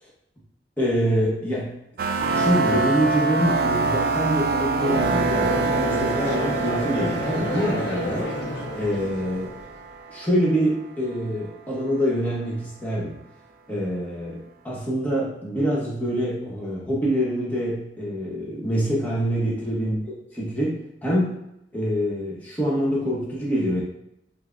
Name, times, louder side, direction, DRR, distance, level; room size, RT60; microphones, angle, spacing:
voice 1, 0.8-1.7 2.3-8.3 8.8-9.5 10.1-13.2 13.7-21.4 21.7-23.8, equal, 10° left, -6 dB, 0.9 m, -25 dB
sound 1, 2.0-10.6, right 3 dB, 55° right, 0.3 m, -25 dB
Conversation / Crowd, 4.4-9.7, left 2 dB, 65° left, 0.5 m, -30 dB
5.3 x 2.0 x 2.5 m, 0.80 s
head